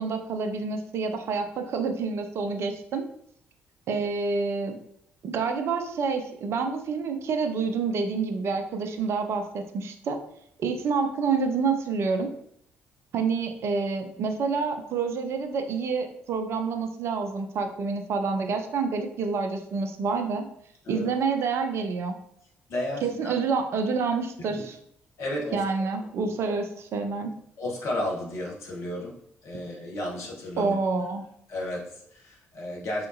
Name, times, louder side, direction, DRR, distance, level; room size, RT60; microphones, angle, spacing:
voice 1, 0.0-3.0 3.9-4.8 5.2-10.2 10.6-12.3 13.1-20.4 20.9-22.2 23.0-24.8 25.5-27.3 30.6-31.2, right 4 dB, 50° right, 6 dB, 0.4 m, -28 dB
voice 2, 22.7-23.4 24.5-24.6 25.2-25.6 27.6-29.2 29.4-30.8 31.5-33.1, left 1 dB, 50° left, -3 dB, 1.1 m, -33 dB
3.6 x 2.8 x 2.5 m, 0.71 s
figure-of-eight pair, 45°, 6 cm